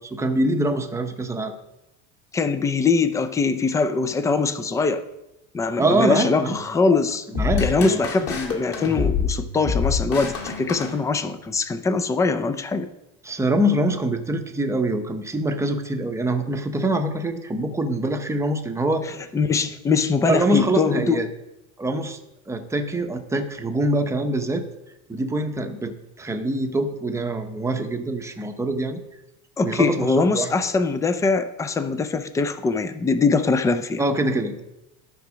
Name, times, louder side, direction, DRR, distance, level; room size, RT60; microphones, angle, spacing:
voice 1, 0.0-1.5 5.8-6.6 7.3-8.1 13.2-19.1 20.3-21.3 21.8-22.2 22.5-24.7 25.1-29.0 29.6-30.6 34.0-34.6, right 1 dB, 10° right, 6 dB, 0.7 m, -24 dB
voice 2, 2.3-5.0 5.5-7.3 7.6-12.9 19.3-21.2 29.6-34.0, left 4 dB, 10° left, 11 dB, 0.3 m, -22 dB
sound 1, 7.3-11.5, left 5 dB, 40° left, 2.2 m, -27 dB
12.5 x 4.6 x 6.1 m, 0.91 s
cardioid pair, 150°, 37 cm